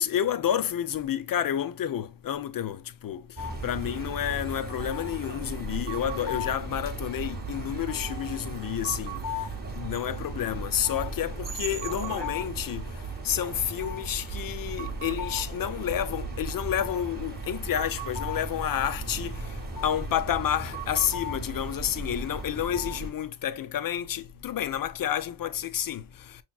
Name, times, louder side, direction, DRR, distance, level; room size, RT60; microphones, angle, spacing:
voice 1, 0.0-12.9 13.2-26.4, left 10 dB, 45° left, 0.5 m, -30 dB
sound 1, 3.4-23.1, right 2 dB, 20° right, 0.8 m, -36 dB
6.2 x 3.0 x 2.3 m
wide cardioid pair, 170°, 46 cm